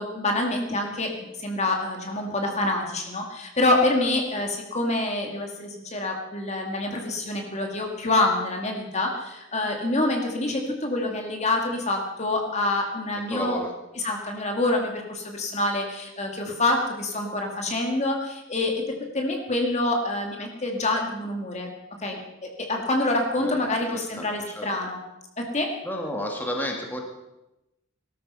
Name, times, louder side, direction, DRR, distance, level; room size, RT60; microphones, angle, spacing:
voice 1, 0.0-13.6 14.0-21.7 22.0-25.0 25.4-25.7, left 2 dB, 35° left, 2 dB, 2.2 m, -26 dB
voice 2, 13.3-13.7 23.4-24.7 25.8-27.0, equal, 10° left, 1 dB, 2.1 m, -32 dB
19.0 x 13.0 x 5.5 m, 0.93 s
head